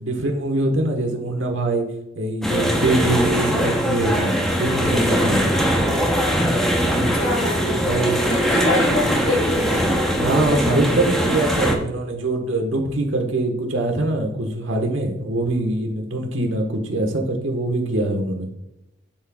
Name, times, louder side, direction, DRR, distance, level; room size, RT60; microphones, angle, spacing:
voice 1, 0.0-1.8 2.1-5.6 7.9-8.2 10.1-18.5, right 2 dB, 65° right, 3 dB, 1.4 m, -23 dB
sound 1, 2.4-11.7, equal, ahead, 0.8 m, -21 dB
voice 2, 6.9-9.9, left 2 dB, 85° left, 1 dB, 1.6 m, -26 dB
12.0 x 4.4 x 2.4 m, 0.87 s
head